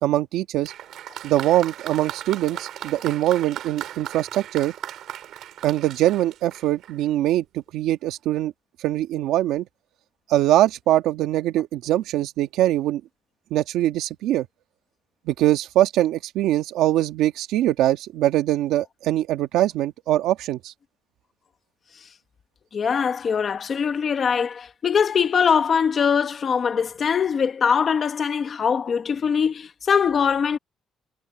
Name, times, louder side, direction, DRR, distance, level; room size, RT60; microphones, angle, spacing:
voice 1, 0.0-0.7 1.2-4.7 5.6-8.5 8.8-9.6 10.3-13.0 13.5-14.5 15.3-20.7, right 13 dB, 85° right, 1.9 m, -22 dB
Applause, 0.6-7.1 8.0-8.1, right 11 dB, 55° right, 4.6 m, -37 dB
voice 2, 22.7-30.6, left 6 dB, 30° left, 1.4 m, -22 dB
cardioid pair, 180°, 0 cm